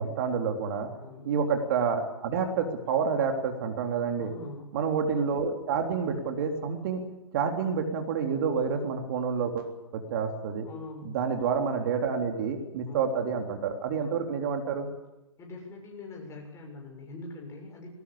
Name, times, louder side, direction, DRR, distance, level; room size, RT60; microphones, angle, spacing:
voice 1, 0.0-0.9 1.2-4.3 4.7-7.0 7.3-10.7 11.0-14.9, right 6 dB, 45° right, 4 dB, 3.5 m, -28 dB
voice 2, 1.0-1.3 4.2-4.8 10.6-11.1 12.9-13.1 14.0-14.2 15.4-17.9, left 2 dB, 15° left, 1 dB, 7.0 m, -43 dB
21.5 x 19.0 x 8.7 m, 0.94 s
hypercardioid pair, 125°, 16 cm